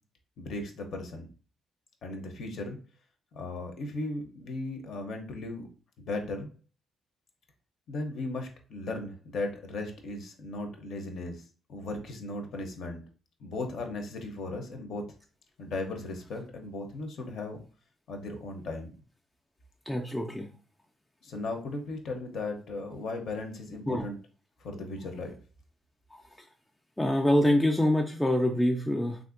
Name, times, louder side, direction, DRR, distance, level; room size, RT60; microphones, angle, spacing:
voice 1, 0.4-1.3 2.0-2.8 3.3-5.7 6.0-6.5 7.9-11.4 11.7-13.0 13.4-15.0 15.6-17.6 18.1-18.9 21.2-24.2 24.6-25.4, left 2 dB, 70° left, 4 dB, 0.6 m, -36 dB
voice 2, 19.9-20.5 23.9-24.0 27.0-29.2, left 1 dB, 10° left, 1 dB, 0.3 m, -25 dB
3.3 x 2.5 x 2.5 m, 0.37 s
cardioid pair, 90°, 0 cm